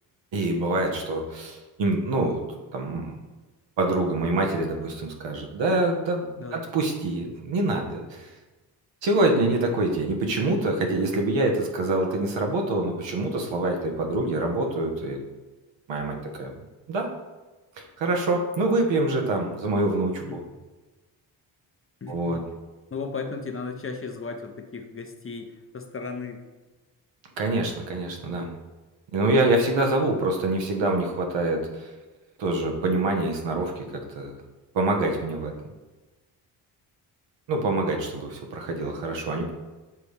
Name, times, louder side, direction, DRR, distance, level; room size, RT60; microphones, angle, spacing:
voice 1, 0.3-2.4 2.7-3.1 3.8-8.3 9.0-15.2 15.9-16.5 16.9-17.1 17.8-20.4 22.1-22.4 27.4-28.5 29.1-31.9 32.4-34.3 34.7-35.5 37.5-39.5, right 2 dB, 70° right, 2 dB, 1.3 m, -25 dB
voice 2, 6.4-6.7 14.2-14.3 20.2-20.4 22.0-22.5 22.9-26.4, left 4 dB, 30° left, 4 dB, 0.8 m, -35 dB
7.1 x 4.0 x 3.4 m, 1.2 s
supercardioid pair, 60°, 46 cm